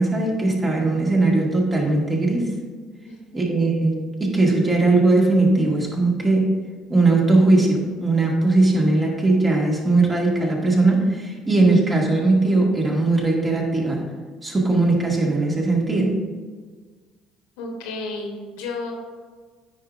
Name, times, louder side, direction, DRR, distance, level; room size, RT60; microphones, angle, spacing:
voice 1, 0.0-2.5 3.3-6.5 6.9-14.0 14.4-16.2, right 2 dB, 25° right, -2 dB, 2.0 m, -19 dB
voice 2, 3.1-3.5 17.6-18.9, left 3 dB, 80° left, 2 dB, 1.1 m, -32 dB
9.2 x 5.2 x 2.6 m, 1.5 s
hypercardioid pair, 70°, 0 cm